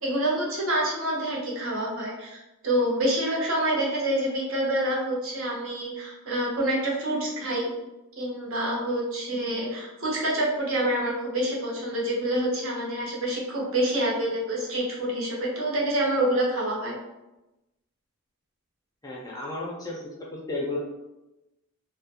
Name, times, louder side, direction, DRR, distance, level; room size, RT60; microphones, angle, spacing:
voice 1, 0.0-2.4 2.6-7.7 8.2-16.9, right 1 dB, 65° right, -3 dB, 0.7 m, -27 dB
voice 2, 19.0-20.0 20.3-20.8, left 2 dB, 15° left, -3 dB, 0.4 m, -33 dB
2.4 x 2.1 x 2.8 m, 0.98 s
head